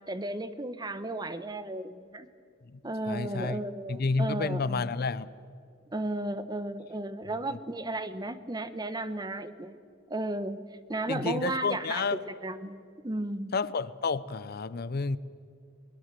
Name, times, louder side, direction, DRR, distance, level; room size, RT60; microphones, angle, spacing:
voice 1, 0.1-2.3 2.8-4.9 5.9-9.8 10.1-10.6 10.9-12.8 13.0-13.5, right 2 dB, 20° right, 12 dB, 0.9 m, -34 dB
voice 2, 3.1-3.6 3.9-5.3 11.1-12.2 13.5-15.2, left 4 dB, 50° left, 17 dB, 0.6 m, -30 dB
24.0 x 20.0 x 7.5 m, 2.3 s
head